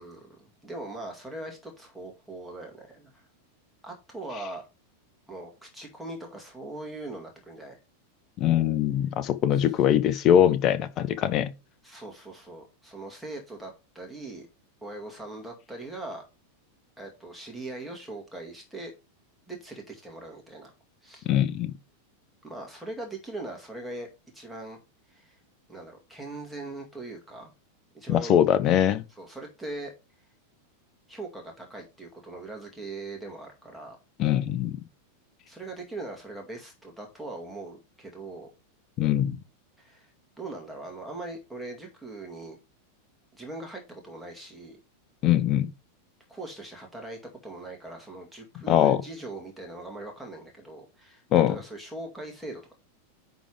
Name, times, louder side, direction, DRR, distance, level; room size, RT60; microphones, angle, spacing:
voice 1, 0.0-3.3 3.8-4.6 5.3-7.8 9.5-9.6 11.8-14.5 14.8-16.2 17.0-18.9 19.5-20.7 21.0-21.3 22.4-24.1 24.3-24.8 25.1-25.4 25.7-27.5 27.9-28.4 29.2-29.9 31.1-34.0 35.5-38.5 39.8-40.1 40.4-42.6 43.4-44.8 46.3-52.7, right 2 dB, ahead, 2.2 m, -40 dB
voice 2, 8.4-11.5 21.3-21.7 28.1-29.0 34.2-34.8 39.0-39.4 45.2-45.7 48.7-49.0 51.3-51.6, left 10 dB, 35° left, 0.8 m, -22 dB
10.0 x 3.6 x 4.9 m
figure-of-eight pair, 90°, 0 cm